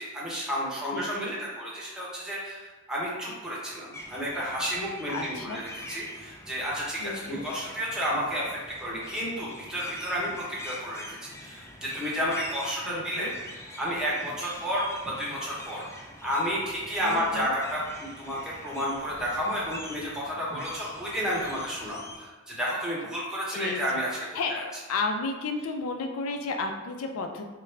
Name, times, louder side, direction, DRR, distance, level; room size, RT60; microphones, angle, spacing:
voice 1, 0.0-8.5 8.8-13.3 13.8-15.8 16.2-24.1 24.5-24.6, equal, 5° right, -6 dB, 0.8 m, -31 dB
voice 2, 0.9-1.3 5.1-5.6 7.0-7.4 12.9-13.3 17.0-17.5 23.5-23.8 24.3-27.4, left 3 dB, 85° left, 4 dB, 0.4 m, -32 dB
sound 1, 3.9-22.2, left 1 dB, 15° left, 0.3 m, -45 dB
3.6 x 2.2 x 3.1 m, 1.2 s
head